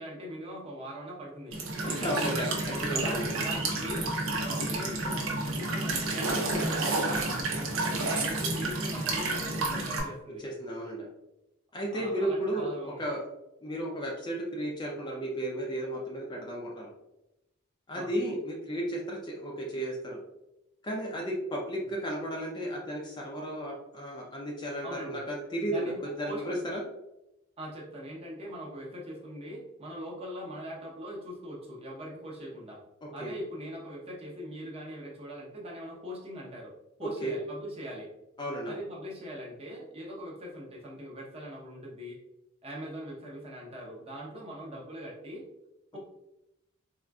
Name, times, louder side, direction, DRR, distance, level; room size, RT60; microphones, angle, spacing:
voice 1, 0.0-2.3 2.9-4.1 4.4-7.7 8.1-10.4 11.9-13.0 17.9-18.2 24.8-25.2 25.7-26.6 27.6-32.8 33.1-36.7 37.0-38.1 38.7-42.2 42.6-45.4 45.9-46.0, equal, 30° right, -3 dB, 0.7 m, -41 dB
Walk footsteps / Chirp tweet / Stream, 1.5-10.0, right 2 dB, 70° right, 0.7 m, -30 dB
voice 2, 1.8-3.4 10.4-11.1 11.7-13.2 13.6-16.9 17.9-20.2 20.8-26.8 33.0-33.3 37.0-37.3 38.4-38.8, right 1 dB, 20° left, -2 dB, 0.4 m, -34 dB
3.6 x 2.5 x 2.2 m, 0.89 s
head